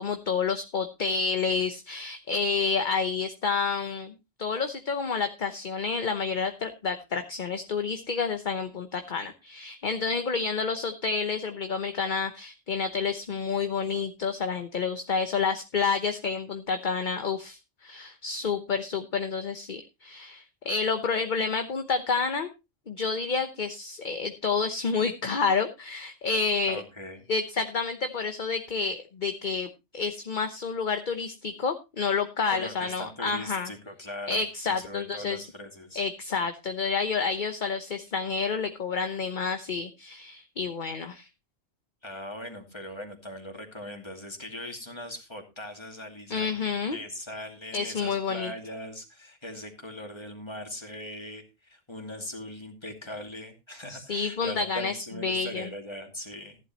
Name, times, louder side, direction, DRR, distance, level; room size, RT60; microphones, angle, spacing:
voice 1, 0.0-4.1 4.4-22.5 22.9-26.8 27.3-33.7 34.3-35.5 36.0-41.3 46.3-47.0 47.7-48.5 53.9-55.0 55.2-55.7, left 5 dB, 45° left, 7 dB, 1.0 m, -29 dB
voice 2, 26.7-27.3 32.5-36.0 42.0-46.5 46.9-56.6, left 1 dB, 20° left, 3 dB, 2.5 m, -40 dB
15.0 x 11.0 x 3.0 m, 0.26 s
omnidirectional pair, 1.3 m